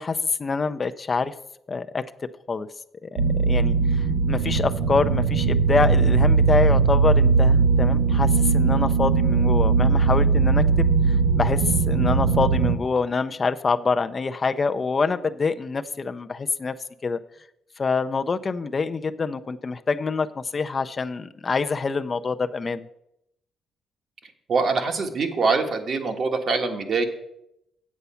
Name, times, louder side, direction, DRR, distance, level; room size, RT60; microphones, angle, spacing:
voice 1, 0.0-1.3 1.7-2.0 2.5-2.7 3.0-16.7 17.0-17.2 17.8-22.8, left 4 dB, 35° left, 10 dB, 0.5 m, -26 dB
sound 1, 3.2-12.8, right 5 dB, 85° right, 0.8 m, -20 dB
voice 2, 24.5-27.0, right 4 dB, 55° right, 4 dB, 1.4 m, -24 dB
8.3 x 8.0 x 5.6 m, 0.81 s
cardioid pair, 90°, 0 cm